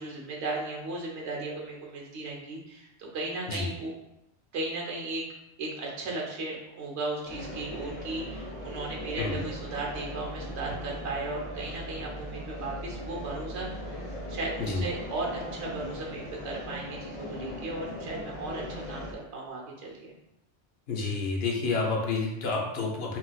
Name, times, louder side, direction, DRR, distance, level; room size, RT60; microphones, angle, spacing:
voice 1, 0.0-3.9 4.5-5.2 5.6-14.0 14.3-20.1, right 2 dB, 85° right, -2 dB, 1.1 m, -36 dB
sound 1, 7.2-19.1, left 1 dB, 40° left, 0.6 m, -39 dB
voice 2, 9.2-9.5 14.6-14.8 20.9-23.2, left 3 dB, 70° left, -1 dB, 0.9 m, -29 dB
4.3 x 2.3 x 2.3 m, 0.87 s
omnidirectional pair, 1.1 m